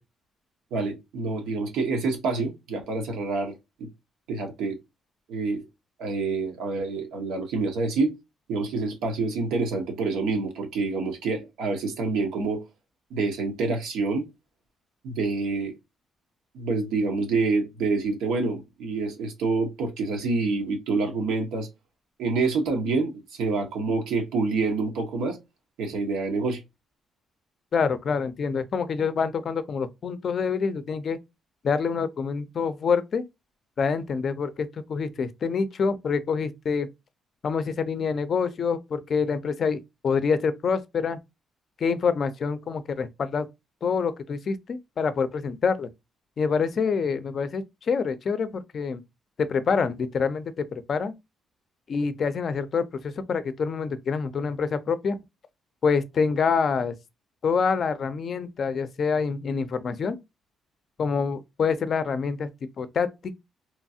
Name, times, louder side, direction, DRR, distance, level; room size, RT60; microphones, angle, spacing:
voice 1, 0.7-3.9 4.3-4.8 5.3-5.6 6.0-8.1 8.5-12.6 13.1-14.3 15.0-15.7 16.5-21.7 22.2-25.4 25.8-26.6, right 3 dB, 90° right, 0.9 m, -27 dB
voice 2, 27.7-31.2 31.6-33.2 33.8-36.9 37.4-41.2 41.8-43.5 43.8-45.9 46.4-49.0 49.4-51.1 51.9-55.2 55.8-56.9 57.4-60.2 61.0-62.5 62.8-63.3, left 5 dB, 50° left, 0.4 m, -26 dB
2.9 x 2.3 x 2.6 m
cardioid pair, 90°, 0 cm